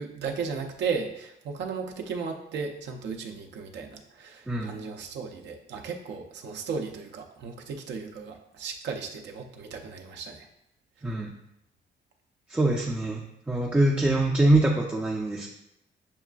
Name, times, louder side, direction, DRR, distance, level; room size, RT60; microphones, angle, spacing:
voice 1, 0.0-10.5, right 5 dB, 70° right, 3 dB, 0.5 m, -35 dB
voice 2, 4.5-4.8 11.0-11.3 12.5-15.5, right 2 dB, 10° right, -1 dB, 0.4 m, -24 dB
6.9 x 2.4 x 2.3 m, 0.82 s
cardioid pair, 115°, 19 cm